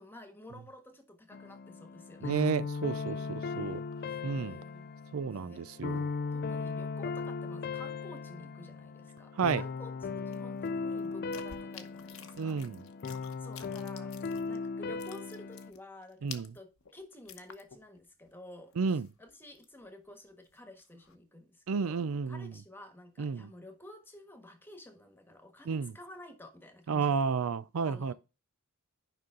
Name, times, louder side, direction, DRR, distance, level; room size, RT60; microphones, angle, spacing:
voice 1, 0.0-2.4 3.0-3.7 4.1-4.9 5.3-12.6 13.4-27.2 27.8-28.1, left 1 dB, 10° left, 1.4 m, -52 dB
sound 1, 1.3-15.7, left 4 dB, 45° left, 0.4 m, -38 dB
voice 2, 2.2-3.8 4.2-4.6 5.1-6.0 9.4-9.6 12.4-12.8 16.2-16.5 18.8-19.1 21.7-22.5 23.2-23.5 25.7-25.9 26.9-28.1, right 5 dB, 75° right, 0.5 m, -31 dB
sound 2, 10.3-14.7 14.9-18.0 18.3-18.4 18.7-19.9 20.3-21.2, left 8 dB, 65° left, 0.9 m, -51 dB
9.2 x 5.5 x 3.7 m
head